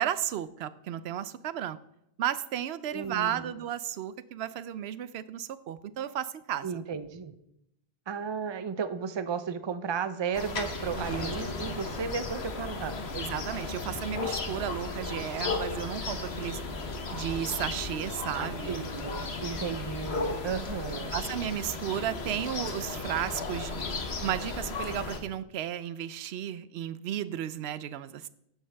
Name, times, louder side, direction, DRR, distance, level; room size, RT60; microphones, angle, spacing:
voice 1, 0.0-1.8 2.2-6.8 11.0-11.3 11.7-11.8 13.1-16.6 17.1-18.9 21.1-23.7 24.2-28.3, right 10 dB, 85° right, 15 dB, 0.8 m, -34 dB
voice 2, 2.9-3.5 6.6-7.3 8.1-12.9 18.3-21.1, right 6 dB, 35° right, 11 dB, 0.5 m, -34 dB
sound 1, 10.3-25.2, left 3 dB, 90° left, 1.5 m, -35 dB
11.5 x 9.4 x 3.4 m, 0.79 s
omnidirectional pair, 1.0 m